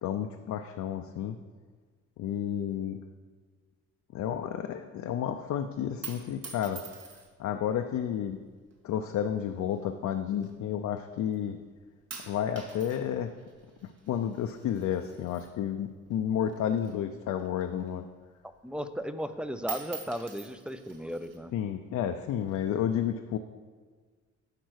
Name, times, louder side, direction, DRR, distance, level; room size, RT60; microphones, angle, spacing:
voice 1, 0.0-1.4 2.2-3.0 4.1-6.8 7.4-8.4 8.8-11.6 12.2-13.3 13.8-18.1 21.5-23.4, left 9 dB, 70° left, 6 dB, 0.6 m, -31 dB
sound 1, 5.8-7.5 8.3-8.8 9.6-11.0 11.3-11.7 12.1-16.2 16.4-18.1 18.5-18.6 18.9-19.3 19.6-21.4 22.2-22.8, right 6 dB, 55° right, 1.9 m, -46 dB
voice 2, 18.6-21.5, equal, 5° right, 11 dB, 0.5 m, -35 dB
10.5 x 4.6 x 6.3 m, 1.5 s
cardioid pair, 90°, 30 cm